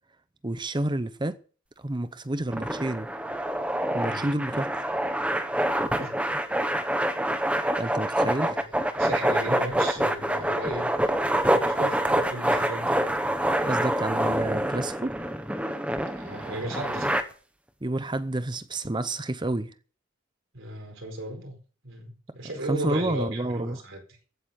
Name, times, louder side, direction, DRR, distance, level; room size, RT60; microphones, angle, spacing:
voice 1, 0.4-1.4 1.8-3.1 3.9-4.8 7.8-8.5 13.6-15.2 17.8-19.7 22.7-23.8, right 1 dB, 20° right, 0.7 m, -29 dB
sound 1, 2.5-17.2, right 1 dB, 5° right, 1.2 m, -26 dB
voice 2, 4.0-4.3 6.0-6.1 8.4-8.6 9.0-11.1 11.5-13.0 16.2-17.1 20.5-21.5 21.8-24.0, right 1 dB, 65° right, 4.5 m, -36 dB
15.0 x 8.7 x 6.7 m
head